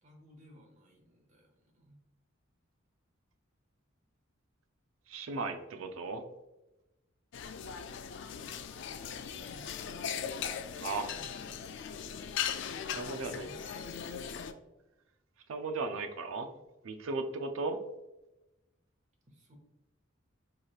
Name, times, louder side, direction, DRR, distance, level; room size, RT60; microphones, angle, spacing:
voice 1, 0.0-2.0 9.3-9.7 11.0-11.8 13.3-13.6 19.3-19.6, equal, 40° right, 2 dB, 0.8 m, -58 dB
voice 2, 5.1-6.2 10.8-11.1 12.9-13.5 15.5-16.5 16.8-17.8, right 3 dB, 90° right, 7 dB, 0.4 m, -36 dB
sound 1, 7.3-14.5, left 8 dB, 60° left, 0.3 m, -39 dB
4.7 x 2.9 x 2.3 m, 0.97 s
head